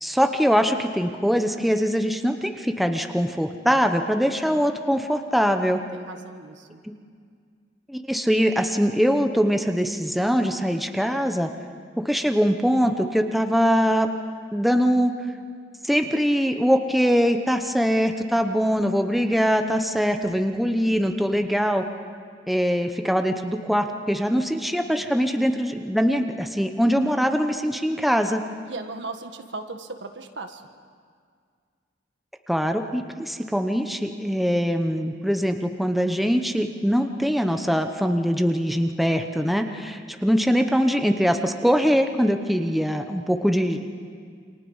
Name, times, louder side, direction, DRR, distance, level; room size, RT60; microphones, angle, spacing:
voice 1, 0.0-5.8 6.8-6.9 7.9-11.5 12.0-14.1 14.5-15.1 15.8-21.8 22.5-28.4 32.5-43.9, equal, ahead, 5 dB, 1.0 m, -22 dB
voice 2, 5.7-6.8 28.6-30.6, right 3 dB, 70° right, 6 dB, 1.6 m, -37 dB
28.5 x 26.0 x 5.6 m, 2.1 s
head